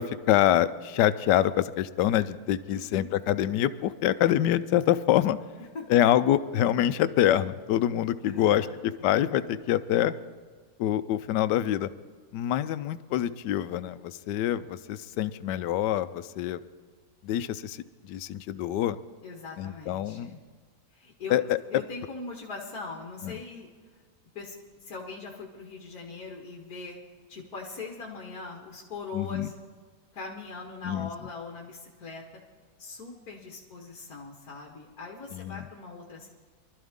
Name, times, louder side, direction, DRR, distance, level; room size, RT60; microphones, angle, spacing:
voice 1, 0.0-5.4 5.9-10.1 10.8-11.9 12.3-16.6 17.2-19.0 19.6-20.4 21.3-21.6 23.2-23.4 29.1-29.5 30.8-31.1 35.3-35.6, left 12 dB, 90° left, 14 dB, 1.2 m, -26 dB
voice 2, 2.7-3.1 5.7-5.8 8.2-9.1 19.2-20.4 20.9-21.4 21.7-23.7 24.4-24.6 24.8-27.0 27.3-29.5 30.1-32.2 32.8-36.3, left 4 dB, 60° left, -1 dB, 1.9 m, -41 dB
23.5 x 12.5 x 3.6 m, 1.5 s
omnidirectional pair, 1.8 m